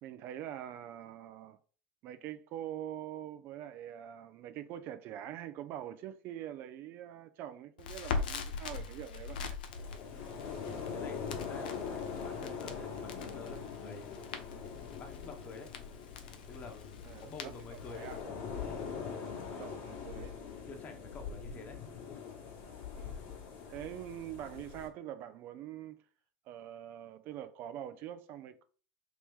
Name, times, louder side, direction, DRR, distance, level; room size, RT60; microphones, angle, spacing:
voice 1, 0.0-1.6 2.0-9.6 17.0-18.2 19.5-20.4 22.9-23.2 23.7-26.0 26.5-28.6, right 11 dB, 50° right, 0.4 m, -44 dB
Crackle, 7.8-18.2, left 5 dB, 80° left, 0.5 m, -42 dB
sound 1, 9.7-24.9, left 6 dB, 55° left, 1.2 m, -43 dB
voice 2, 10.9-14.2 15.0-15.7 16.5-18.1 18.6-18.9 19.4-19.8 20.7-21.8, left 3 dB, 35° left, 1.0 m, -49 dB
3.0 x 3.0 x 3.5 m
hypercardioid pair, 90°, 5 cm